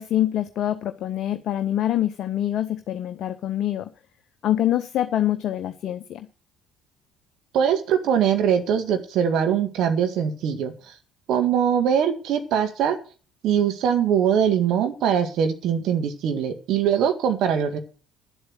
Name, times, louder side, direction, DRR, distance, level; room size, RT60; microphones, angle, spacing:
voice 1, 0.0-3.9 4.4-6.3, left 12 dB, 50° left, 10 dB, 0.8 m, -25 dB
voice 2, 7.5-10.9 11.3-13.0 13.4-17.8, right 8 dB, 55° right, 7 dB, 1.9 m, -22 dB
11.0 x 7.9 x 7.8 m, 0.36 s
figure-of-eight pair, 50°, 0 cm